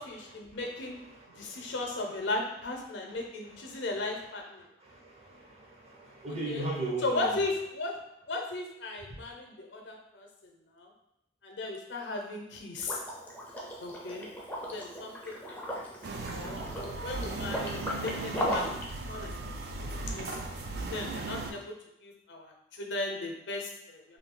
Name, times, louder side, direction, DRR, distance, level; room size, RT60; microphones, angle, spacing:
voice 1, 0.0-1.0 1.4-4.6 6.5-6.6 7.0-8.0 8.3-10.3 10.8-10.9 11.4-13.0 13.8-14.3 14.7-15.9 16.3-18.7 19.0-19.5 19.8-20.3 20.9-21.7 22.0-24.2, left 2 dB, 85° left, 2 dB, 0.6 m, -36 dB
voice 2, 0.9-1.7 3.1-3.8 4.8-7.4 9.0-9.2, right 2 dB, 35° right, -3 dB, 0.7 m, -39 dB
Liquid, 12.8-18.9, equal, 10° left, 0.4 m, -37 dB
sound 1, 16.0-21.5, right 2 dB, 60° right, 0.4 m, -37 dB
2.7 x 2.4 x 3.7 m, 0.83 s
head